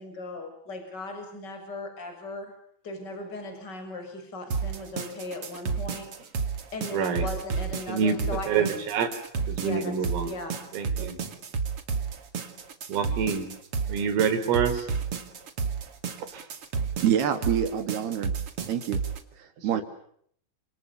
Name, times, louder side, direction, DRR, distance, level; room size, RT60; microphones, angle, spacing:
voice 1, 0.0-2.5 2.8-6.1 6.7-8.7 9.6-10.0 10.2-10.6, left 2 dB, 20° left, 6 dB, 6.7 m, -37 dB
sound 1, 4.5-19.2, right 5 dB, 40° right, 2.2 m, -32 dB
voice 2, 6.9-7.3 7.9-9.1 9.5-10.3 10.7-11.2 12.9-13.5 13.9-14.9 16.3-16.4 19.7-19.8, right 6 dB, 80° right, 7 dB, 6.4 m, -27 dB
voice 3, 17.0-18.4 18.7-19.0 19.6-19.8, right 9 dB, 55° right, 9 dB, 4.2 m, -26 dB
29.5 x 27.5 x 6.9 m, 0.66 s
omnidirectional pair, 5.9 m